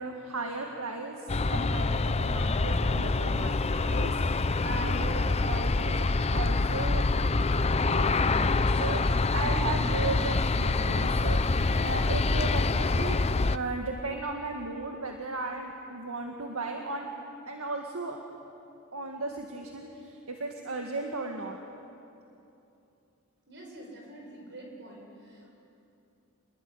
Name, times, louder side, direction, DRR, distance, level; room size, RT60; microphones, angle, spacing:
voice 1, 0.0-7.1 7.8-11.4 11.8-13.2 13.5-18.2 18.9-21.6, right 3 dB, 75° right, 2 dB, 2.0 m, -36 dB
Aircraft, 1.3-13.6, left 3 dB, 30° left, 0.6 m, -26 dB
voice 2, 23.5-25.6, right 1 dB, 55° right, 0 dB, 7.4 m, -47 dB
28.0 x 21.0 x 9.9 m, 2.8 s
head